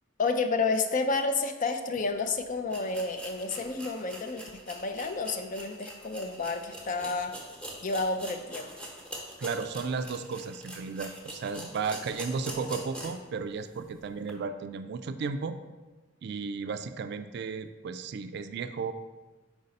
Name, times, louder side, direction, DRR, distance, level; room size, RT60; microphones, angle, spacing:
voice 1, 0.2-7.3 7.8-8.7, left 3 dB, 40° left, 8 dB, 0.4 m, -30 dB
sound 1, 2.1-2.2 2.7-13.3 13.7-13.8 14.2-14.3, right 1 dB, 5° left, 0.9 m, -44 dB
voice 2, 9.4-15.6 16.2-18.9, right 5 dB, 55° right, 10 dB, 0.3 m, -34 dB
5.2 x 4.8 x 4.0 m, 1.2 s
head